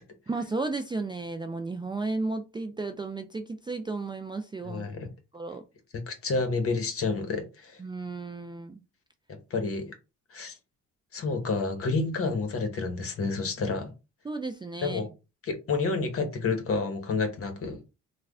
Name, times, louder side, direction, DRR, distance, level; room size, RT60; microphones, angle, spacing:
voice 1, 0.3-4.9 5.3-5.6 7.8-8.8 14.2-15.1, right 3 dB, 15° right, 0.3 m, -33 dB
voice 2, 4.6-5.1 6.1-7.8 9.5-9.9 10.3-10.6 11.1-13.9 14.8-15.1 15.4-17.8, left 4 dB, 50° left, 1.0 m, -29 dB
3.2 x 2.2 x 3.6 m
cardioid pair, 90°, 30 cm